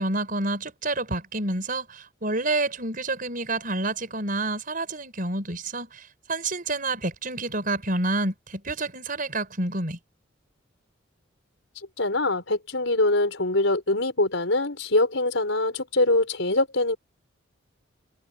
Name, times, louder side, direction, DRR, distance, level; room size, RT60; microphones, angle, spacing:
voice 1, 0.0-10.0, right 2 dB, 45° right, 5.8 m, -28 dB
voice 2, 12.0-17.0, left 2 dB, 75° left, 5.1 m, -23 dB
head